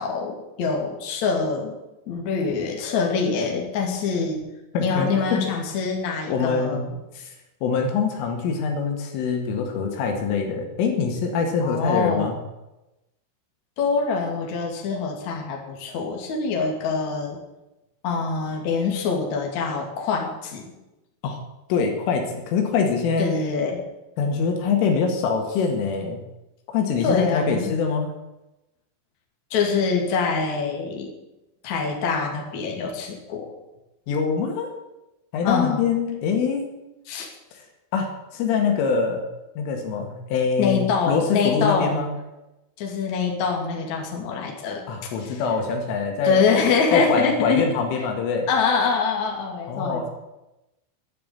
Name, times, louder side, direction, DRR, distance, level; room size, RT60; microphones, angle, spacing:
voice 1, 0.0-1.8 2.1-4.4 4.8-6.9 11.6-12.3 13.8-17.4 18.0-20.6 23.2-23.8 27.0-27.7 29.5-31.1 31.6-33.5 35.4-35.8 37.1-37.3 40.6-42.0 42.8-45.4 46.2-47.6 48.5-50.1, left 5 dB, 45° left, 0 dB, 3.0 m, -24 dB
voice 2, 4.7-5.4 6.3-6.9 7.1-7.3 7.6-12.4 21.2-21.4 21.7-23.3 24.2-26.2 26.7-28.1 34.1-34.7 35.3-36.7 37.5-37.6 37.9-39.3 39.6-42.2 44.9-46.4 46.9-48.5 49.7-50.1, left 5 dB, 85° left, 3 dB, 4.5 m, -24 dB
11.5 x 10.0 x 8.9 m, 0.97 s
omnidirectional pair, 5.6 m